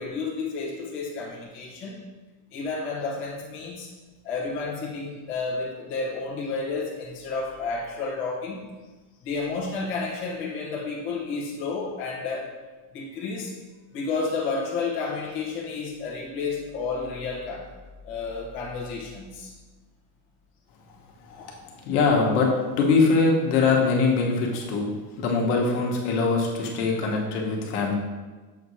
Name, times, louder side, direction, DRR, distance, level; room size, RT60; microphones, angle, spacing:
voice 1, 0.0-2.0 2.5-3.9 4.2-8.6 9.2-12.5 12.9-13.5 13.9-17.7 18.0-19.5 21.4-21.5, left 4 dB, 25° left, -5 dB, 0.9 m, -31 dB
voice 2, 21.8-22.5 22.8-27.9, left 4 dB, 65° left, -1 dB, 1.3 m, -22 dB
7.1 x 2.8 x 4.8 m, 1.3 s
cardioid pair, 175°, 49 cm